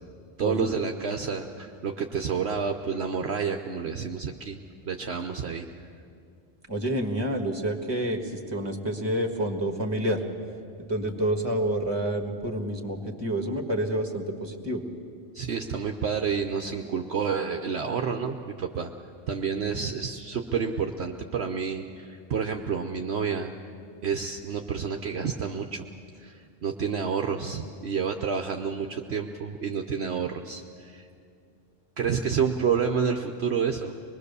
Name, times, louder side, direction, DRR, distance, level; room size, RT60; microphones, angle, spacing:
voice 1, 0.4-4.6 4.9-5.7 15.3-18.9 19.3-23.5 24.0-25.8 26.2-31.1 32.0-33.9, right 6 dB, 60° right, 5 dB, 1.0 m, -29 dB
voice 2, 6.7-10.2 10.9-14.8, right 1 dB, 20° right, 5 dB, 1.6 m, -28 dB
24.5 x 21.0 x 6.8 m, 2.4 s
omnidirectional pair, 1.3 m